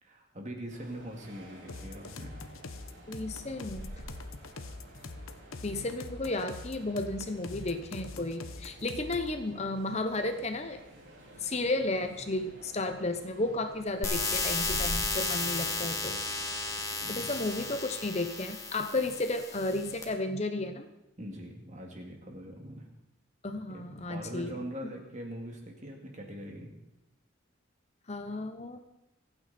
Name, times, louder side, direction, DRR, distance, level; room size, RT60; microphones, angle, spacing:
voice 1, 0.0-2.3 17.0-17.4 21.2-22.9 23.7-26.7, equal, 35° right, 1 dB, 2.5 m, -42 dB
sound 1, 0.7-17.5, equal, 65° right, 7.2 m, -48 dB
sound 2, 1.7-9.4, left 3 dB, 85° left, 1.1 m, -44 dB
voice 2, 3.1-3.9 5.6-10.8 11.4-16.2 17.1-20.9 23.4-24.9 28.1-28.8, left 2 dB, 30° left, 7 dB, 0.9 m, -33 dB
sound 3, 14.0-20.0, left 3 dB, 15° left, 1.9 m, -34 dB
26.5 x 9.1 x 4.4 m, 0.91 s
head